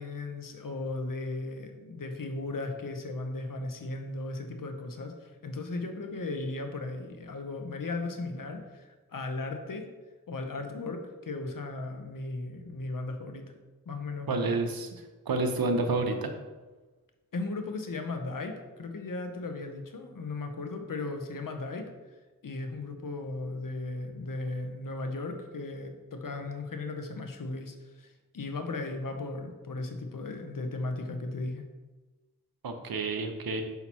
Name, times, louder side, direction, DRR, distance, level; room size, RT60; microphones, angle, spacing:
voice 1, 0.0-9.9 10.3-13.5 13.9-14.6 17.3-21.9 22.4-31.7, left 2 dB, 65° left, 5 dB, 0.8 m, -36 dB
voice 2, 14.3-14.9 15.3-16.3 32.6-33.6, right 3 dB, 85° right, 6 dB, 0.7 m, -29 dB
5.7 x 5.7 x 3.0 m, 1.2 s
cardioid pair, 40°, 35 cm